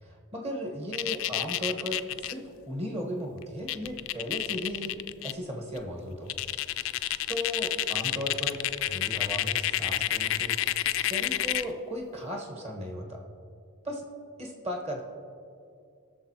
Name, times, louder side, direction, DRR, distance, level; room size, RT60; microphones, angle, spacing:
voice 1, 0.0-5.0 5.2-6.3 7.3-10.6 11.0-13.2 13.8-14.0 14.4-15.0, equal, 30° right, 0 dB, 1.3 m, -36 dB
sound 1, 0.9-2.3 3.4-3.5 3.7-5.3 5.8-5.9 6.3-11.7, left 13 dB, 60° left, 0.3 m, -29 dB
19.5 x 6.8 x 2.9 m, 2.3 s
head